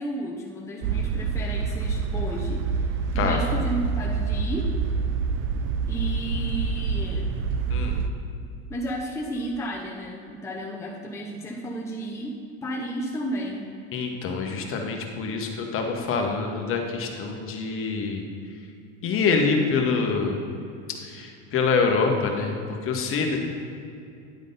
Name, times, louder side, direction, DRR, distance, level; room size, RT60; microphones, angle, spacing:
voice 1, 0.0-4.7 5.9-7.3 8.7-13.7, equal, 10° left, -3 dB, 0.7 m, -33 dB
sound 1, 0.8-8.1, right 5 dB, 45° right, 0.5 m, -27 dB
voice 2, 7.7-8.0 13.9-18.2 19.0-20.3 21.0-22.6 22.8-23.4, left 4 dB, 40° left, 2 dB, 1.2 m, -25 dB
10.5 x 3.8 x 5.3 m, 2.5 s
supercardioid pair, 110°, 35 cm